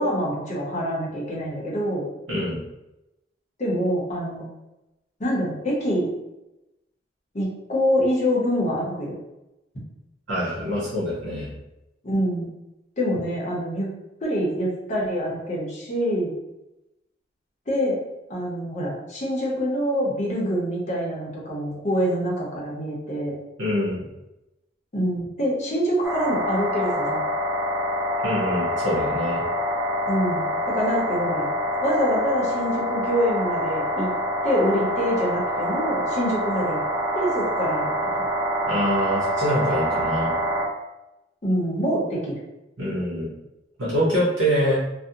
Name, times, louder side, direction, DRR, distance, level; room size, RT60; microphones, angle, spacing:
voice 1, 0.0-2.1 3.6-4.4 5.2-6.1 7.3-9.2 12.0-12.5 13.0-13.9 14.2-16.3 17.7-18.0 18.3-23.3 24.9-27.2 30.1-31.5 31.8-34.1 34.4-36.8 37.1-38.3 41.4-42.4, equal, 40° left, -4 dB, 0.7 m, -25 dB
voice 2, 2.3-2.6 10.3-11.5 23.6-24.0 28.2-29.4 38.7-40.3 42.8-43.3 43.8-44.8, equal, 85° right, -7 dB, 0.8 m, -25 dB
sound 1, 26.0-40.7, equal, 10° right, 0.3 m, -26 dB
2.5 x 2.0 x 2.7 m, 0.94 s
head